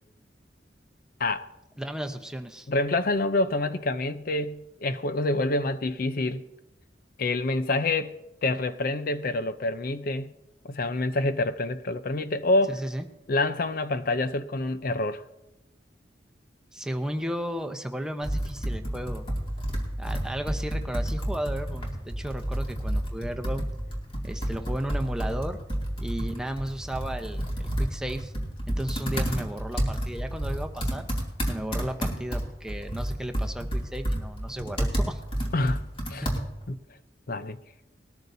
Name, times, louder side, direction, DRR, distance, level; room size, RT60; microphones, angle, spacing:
voice 1, 1.8-2.7 12.7-13.0 16.7-19.2 20.0-23.7 24.2-25.6 26.0-28.3 28.7-31.1 31.5-35.2 36.2-36.3, right 1 dB, 5° right, 0.8 m, -34 dB
voice 2, 2.7-6.4 7.2-8.2 8.4-10.3 10.7-12.8 13.3-15.2 35.5-35.8 36.1-36.3 36.7-36.8 37.3-37.6, left 2 dB, 55° left, 0.6 m, -27 dB
Computer keyboard, 18.2-36.7, equal, 30° left, 2.5 m, -30 dB
20.0 x 13.5 x 2.7 m
head